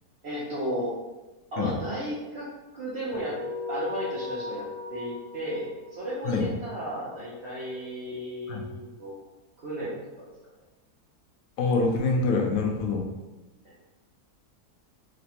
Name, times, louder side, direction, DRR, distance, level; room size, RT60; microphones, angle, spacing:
voice 1, 0.2-0.9 1.5-3.4 3.7-9.1 9.6-10.3 13.6-13.7, right 1 dB, 55° right, -7 dB, 0.7 m, -34 dB
sound 1, 3.2-8.0, left 4 dB, 80° right, 0.4 m, -39 dB
voice 2, 11.6-13.1, left 3 dB, 70° left, 1 dB, 0.9 m, -25 dB
4.0 x 2.2 x 2.8 m, 1.1 s
omnidirectional pair, 1.7 m